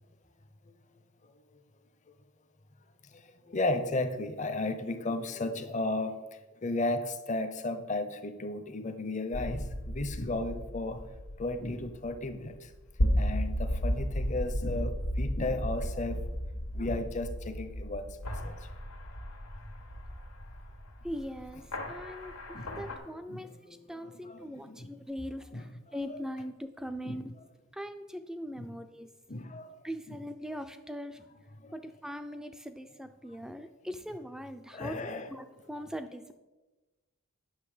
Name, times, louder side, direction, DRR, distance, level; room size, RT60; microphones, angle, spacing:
voice 1, 1.2-1.6 3.0-11.0 11.4-12.7 13.1-16.3 16.7-18.7 21.8-22.0 22.4-22.8 23.1-24.9 25.5-25.7 27.0-27.2 28.6-28.7 29.3-29.8 30.1-30.2 31.6-31.8 34.7-35.3, left 2 dB, 35° left, 9 dB, 0.7 m, -35 dB
sound 1, 9.3-23.0, equal, 80° left, 1.5 m, -34 dB
voice 2, 21.0-23.5 23.9-27.3 27.7-29.1 29.8-31.3 31.7-35.0 35.3-36.3, equal, ahead, 9 dB, 0.4 m, -41 dB
9.2 x 6.5 x 4.9 m, 1.2 s
head